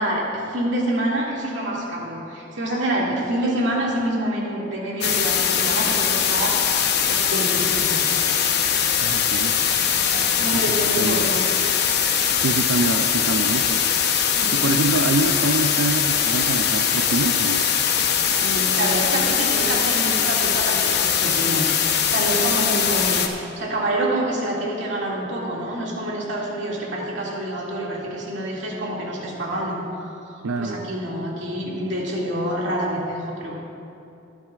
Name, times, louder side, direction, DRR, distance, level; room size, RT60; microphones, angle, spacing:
voice 1, 0.0-8.1 10.0-11.5 14.3-14.5 18.4-29.8 30.2-33.6, right 1 dB, 65° right, -4 dB, 2.2 m, -27 dB
sound 1, 5.0-23.3, left 8 dB, 55° left, 0.8 m, -21 dB
voice 2, 9.0-9.6 10.5-11.3 12.4-13.8 14.5-17.6 30.4-30.8, right 3 dB, 85° right, 4 dB, 0.5 m, -25 dB
21.0 x 9.0 x 2.4 m, 2.7 s
head